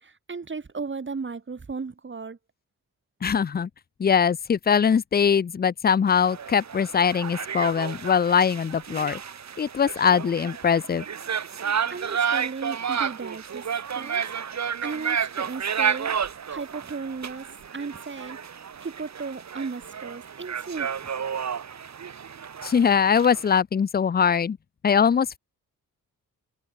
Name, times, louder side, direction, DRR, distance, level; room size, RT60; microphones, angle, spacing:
voice 1, 0.0-2.4 11.9-14.3 14.6-18.4 18.8-21.1, right 4 dB, 35° right, 4.6 m, -36 dB
voice 2, 3.2-3.7 4.0-9.2 9.6-11.0 22.6-24.6 24.8-25.4, left 7 dB, 30° left, 0.6 m, -22 dB
sound 1, 6.1-23.6, right 7 dB, 55° right, 2.8 m, -31 dB
cardioid pair, 95°, 33 cm